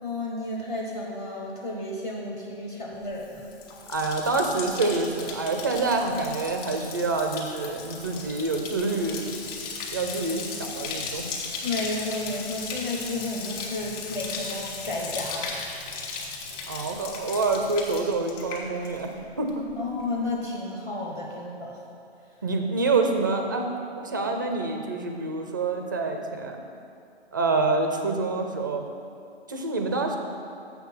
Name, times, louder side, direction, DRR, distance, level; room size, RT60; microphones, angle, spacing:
voice 1, 0.0-3.5 11.6-15.6 19.8-21.8, left 2 dB, 20° left, -3 dB, 0.7 m, -32 dB
Bathtub (filling or washing), 3.1-19.2 19.5-20.0, left 4 dB, 35° left, 1.6 m, -36 dB
voice 2, 3.9-9.3 9.9-11.3 16.7-19.1 19.4-19.7 22.4-23.7 24.0-26.6 27.3-28.9 29.5-30.2, right 3 dB, 20° right, 4 dB, 0.4 m, -27 dB
6.9 x 5.9 x 7.3 m, 2.5 s
hypercardioid pair, 150°, 33 cm